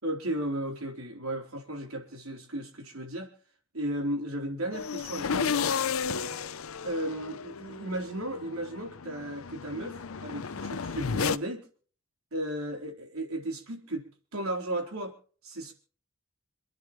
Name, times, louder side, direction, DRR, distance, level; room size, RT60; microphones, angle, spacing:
voice 1, 0.0-3.3 3.7-5.6 6.8-11.7 12.3-15.1 15.4-15.7, right 1 dB, 85° right, 2 dB, 4.1 m, -35 dB
sound 1, 4.7-11.4, left 6 dB, 80° left, 0.7 m, -33 dB
28.0 x 10.5 x 3.2 m, 0.42 s
head